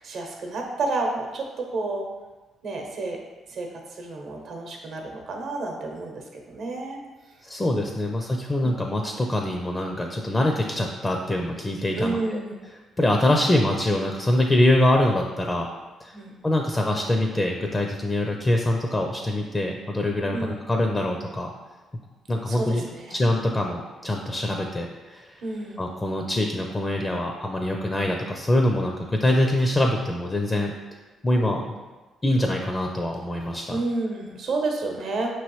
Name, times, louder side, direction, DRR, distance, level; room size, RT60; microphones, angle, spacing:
voice 1, 0.0-2.1 2.6-3.2 3.5-7.0 7.8-8.1 8.6-8.8 11.9-12.6 16.1-16.4 20.3-20.5 22.5-23.2 25.4-25.9 33.3-35.3, right 2 dB, 65° right, 1 dB, 0.8 m, -30 dB
voice 2, 7.4-12.4 13.0-15.7 16.0-16.1 16.4-21.5 22.3-22.8 23.1-25.3 25.8-30.7 31.2-31.8 32.2-33.8, left 1 dB, 20° left, 2 dB, 0.4 m, -24 dB
5.2 x 3.1 x 3.1 m, 1.2 s
cardioid pair, 90°, 0 cm